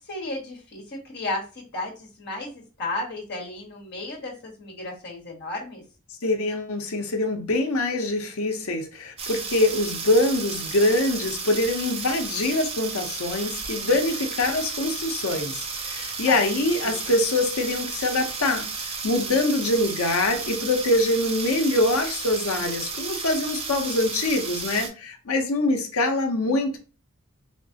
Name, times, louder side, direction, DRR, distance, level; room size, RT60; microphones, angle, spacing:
voice 1, 0.1-5.8 16.3-17.0, left 2 dB, 45° left, 1.4 m, -34 dB
voice 2, 6.2-26.8, left 2 dB, 70° left, 0.8 m, -24 dB
sound 1, 9.2-24.9, right 4 dB, 25° right, 0.5 m, -33 dB
3.5 x 3.2 x 2.7 m
head